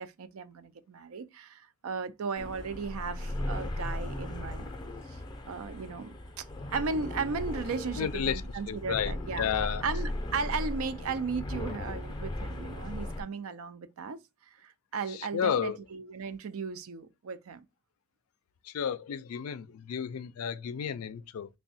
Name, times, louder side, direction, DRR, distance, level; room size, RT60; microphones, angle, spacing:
voice 1, 0.0-4.7 5.1-5.2 5.5-6.4 6.7-9.5 9.8-14.2 14.6-17.6, right 5 dB, 75° right, 0.4 m, -36 dB
sound 1, 2.4-13.2, left 1 dB, 20° left, 0.5 m, -37 dB
voice 2, 8.0-8.4 8.7-9.8 15.1-15.8 18.7-21.5, left 8 dB, 85° left, 0.4 m, -32 dB
3.5 x 2.2 x 4.1 m
head